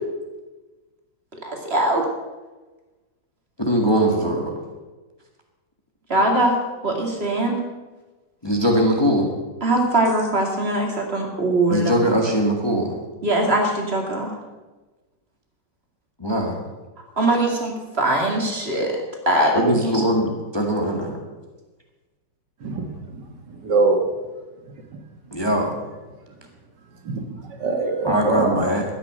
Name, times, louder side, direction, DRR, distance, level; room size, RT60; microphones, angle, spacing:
voice 1, 1.4-2.0 6.1-6.6 6.8-7.6 9.6-11.9 13.2-14.3 17.2-18.9 19.3-19.6 19.9-20.0, right 1 dB, 35° right, 1 dB, 2.7 m, -21 dB
voice 2, 3.6-4.5 8.4-9.3 11.7-12.9 16.2-16.6 19.5-21.2 25.3-25.7 28.0-28.8, equal, 15° left, 1 dB, 1.6 m, -21 dB
voice 3, 22.6-23.2 23.5-24.0 27.0-28.6, right 3 dB, 70° right, 3 dB, 2.2 m, -23 dB
12.5 x 9.6 x 6.6 m, 1.2 s
omnidirectional pair, 2.0 m